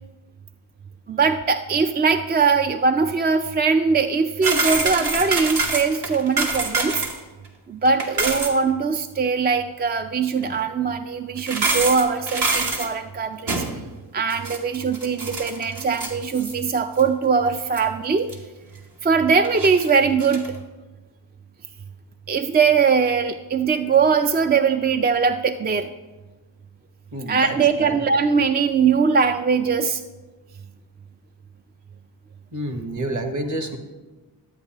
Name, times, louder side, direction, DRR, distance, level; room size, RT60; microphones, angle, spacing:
voice 1, 1.1-7.0 7.7-13.6 14.1-18.3 19.0-20.5 22.3-25.9 27.3-30.0, right 5 dB, 25° right, 8 dB, 0.3 m, -21 dB
sound 1, 4.4-7.2 7.5-7.6 7.9-8.5 10.4-10.5 11.4-12.9 13.5-13.8 14.3-16.7 17.0-17.1 17.6-17.8 18.3-18.4 19.4-20.5, right 3 dB, 60° right, 1.5 m, -25 dB
voice 2, 27.1-28.0 32.5-33.8, right 1 dB, 40° right, 6 dB, 1.3 m, -29 dB
12.0 x 8.1 x 2.9 m, 1.2 s
cardioid pair, 55°, 44 cm